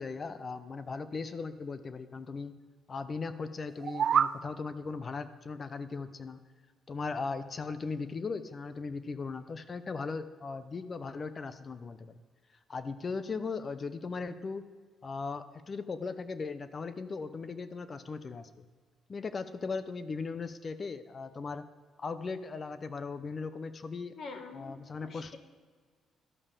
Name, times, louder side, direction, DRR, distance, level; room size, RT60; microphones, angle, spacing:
voice 1, 0.0-2.5 2.9-6.4 6.9-12.2 12.7-14.6 15.0-18.7 19.1-21.6 22.0-24.2 24.5-25.4, left 4 dB, 40° left, 12 dB, 0.7 m, -38 dB
sound 1, 3.7-4.4, right 8 dB, 60° right, 0.3 m, -27 dB
voice 2, 24.2-25.4, left 4 dB, 60° left, 6 dB, 1.4 m, -45 dB
12.5 x 5.4 x 6.7 m, 1.5 s
cardioid pair, 90°, 0 cm